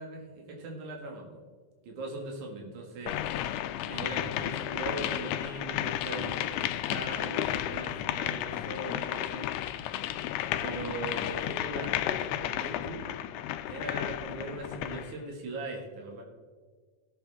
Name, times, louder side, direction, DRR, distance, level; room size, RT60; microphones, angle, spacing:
voice 1, 0.0-1.4 1.8-3.2 3.8-9.5 10.6-13.1 13.7-16.2, right 2 dB, 75° right, 0 dB, 3.2 m, -40 dB
sound 1, 3.1-15.1, left 12 dB, 85° left, 1.5 m, -33 dB
19.5 x 7.2 x 3.4 m, 1.5 s
omnidirectional pair, 3.5 m